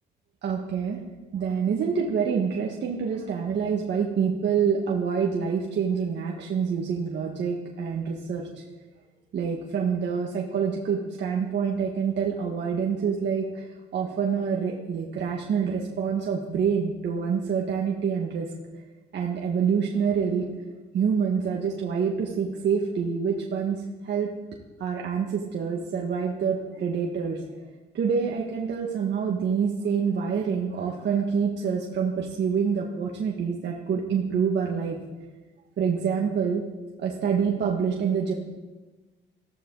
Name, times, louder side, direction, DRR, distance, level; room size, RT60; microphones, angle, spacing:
voice 1, 0.4-1.0 1.3-8.5 9.3-18.5 19.1-20.6 20.9-24.3 24.8-27.5 27.9-35.0 35.8-36.6 37.0-38.3, right 6 dB, 60° right, -1 dB, 1.8 m, -26 dB
18.5 x 14.5 x 4.1 m, 1.2 s
cardioid pair, 90°, 20 cm